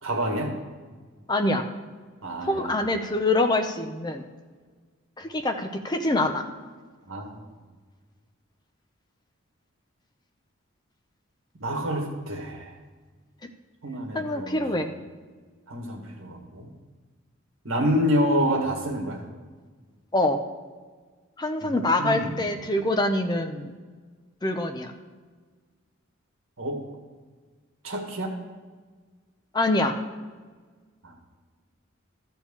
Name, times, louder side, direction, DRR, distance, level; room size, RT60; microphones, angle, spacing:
voice 1, 0.0-0.5 2.2-2.8 7.1-7.4 11.6-12.7 13.8-14.6 15.7-16.7 17.6-19.2 21.6-22.4 26.6-26.8 27.8-28.3 31.0-31.1, equal, 80° right, 3 dB, 1.7 m, -28 dB
voice 2, 1.3-1.6 2.4-4.2 5.2-6.4 14.1-14.9 20.1-20.4 21.4-23.7 24.4-24.9 29.5-29.9, left 2 dB, 20° left, 6 dB, 0.5 m, -25 dB
13.0 x 4.5 x 7.1 m, 1.5 s
head